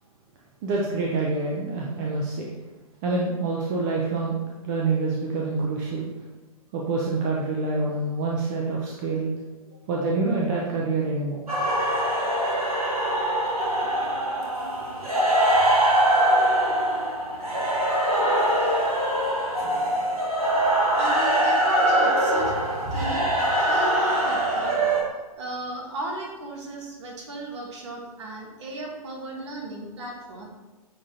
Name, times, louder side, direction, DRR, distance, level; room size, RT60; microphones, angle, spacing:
voice 1, 0.6-2.5 3.0-4.4 4.6-6.1 6.7-9.3 9.9-11.5, right 3 dB, 30° right, -2 dB, 0.7 m, -26 dB
sound 1, 11.5-25.0, right 1 dB, 70° right, 1.9 m, -23 dB
voice 2, 21.0-22.5 22.9-23.9 24.2-24.8 25.4-30.5, right 1 dB, 45° right, 0 dB, 1.6 m, -35 dB
9.5 x 3.7 x 2.9 m, 1.1 s
figure-of-eight pair, 120°, 19 cm